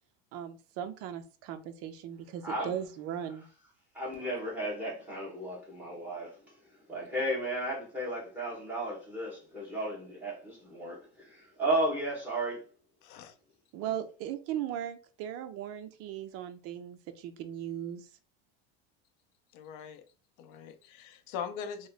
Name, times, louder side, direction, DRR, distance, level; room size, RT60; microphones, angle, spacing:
voice 1, 0.3-3.5 13.7-18.1, right 10 dB, 45° right, 0.5 m, -38 dB
voice 2, 3.9-6.5 6.9-12.6, right 1 dB, 5° right, 1.4 m, -34 dB
voice 3, 13.0-13.3 13.8-14.0 19.5-20.0 20.4-21.9, left 7 dB, 60° left, 0.6 m, -41 dB
3.1 x 2.1 x 3.9 m
cardioid pair, 145°, 33 cm